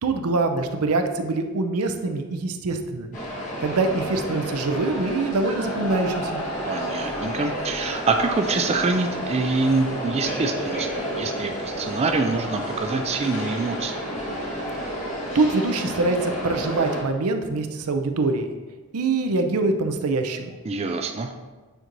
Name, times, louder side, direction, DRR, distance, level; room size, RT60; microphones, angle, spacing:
voice 1, 0.0-3.1 3.6-6.4 15.3-18.5 18.9-20.6, right 3 dB, 85° right, 6 dB, 0.6 m, -24 dB
sound 1, 3.1-17.0, equal, 35° left, 1.3 m, -30 dB
voice 2, 6.6-14.0 20.6-21.3, right 3 dB, 30° right, 5 dB, 0.3 m, -25 dB
8.9 x 4.5 x 2.6 m, 1.3 s
head